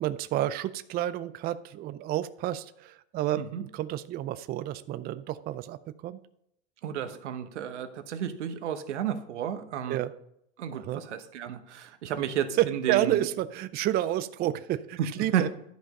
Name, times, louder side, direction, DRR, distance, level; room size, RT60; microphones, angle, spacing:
voice 1, 0.0-5.8 6.0-6.2 9.9-10.1 10.8-11.0 12.6-15.5, right 13 dB, 30° right, 14 dB, 0.4 m, -30 dB
voice 2, 6.8-10.0 10.6-13.3 15.0-15.5, right 9 dB, 90° right, 9 dB, 1.1 m, -32 dB
11.5 x 5.1 x 5.3 m, 0.76 s
supercardioid pair, 115°, 34 cm